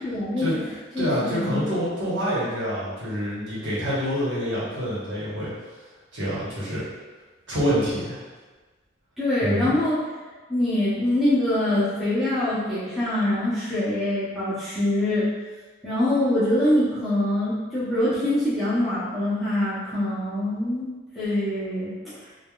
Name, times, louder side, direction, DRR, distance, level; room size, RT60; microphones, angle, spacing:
voice 1, 0.0-0.5 0.9-1.6 9.2-10.0 10.5-15.3 15.8-20.8 21.2-21.9, left 1 dB, ahead, -13 dB, 0.7 m, -24 dB
voice 2, 1.0-5.5 6.1-6.8 7.5-8.2 9.4-9.7, equal, 70° right, -9 dB, 1.1 m, -26 dB
3.3 x 2.3 x 2.3 m, 1.3 s
head